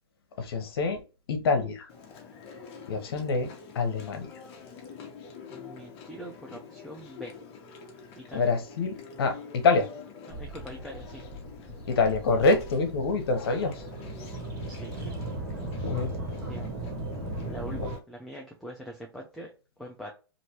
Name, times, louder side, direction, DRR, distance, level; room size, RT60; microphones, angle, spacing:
voice 1, 0.4-1.0 1.3-1.9 2.9-3.5 3.7-4.3 8.3-9.9 11.9-13.9 15.8-16.1, left 4 dB, 65° left, 0.9 m, -26 dB
Chewing mastication, 1.9-18.0, left 5 dB, 30° left, 0.8 m, -47 dB
voice 2, 5.5-7.4 8.2-8.5 10.3-11.3 14.7-15.1 16.4-16.7 17.5-20.1, equal, ahead, 0.4 m, -43 dB
sound 1, 10.3-18.0, right 1 dB, 50° right, 1.5 m, -37 dB
3.1 x 2.6 x 2.9 m
hypercardioid pair, 150°, 13 cm